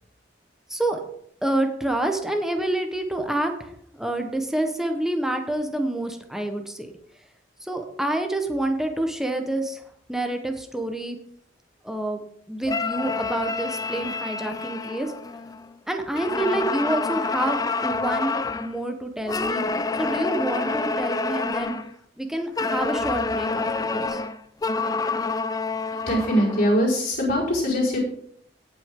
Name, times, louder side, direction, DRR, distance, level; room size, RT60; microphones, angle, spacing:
voice 1, 1.4-6.9 7.6-9.8 10.1-11.2 11.8-12.2 12.5-15.1 15.9-19.7 20.0-21.8 22.2-24.2, right 1 dB, 5° right, 4 dB, 1.2 m, -27 dB
sound 1, 12.6-15.7 16.1-18.7 19.3-21.9 22.6-26.8, left 3 dB, 20° left, 0.4 m, -28 dB
voice 2, 25.9-28.0, equal, 55° left, -5 dB, 5.1 m, -22 dB
17.5 x 6.2 x 3.8 m, 0.67 s
head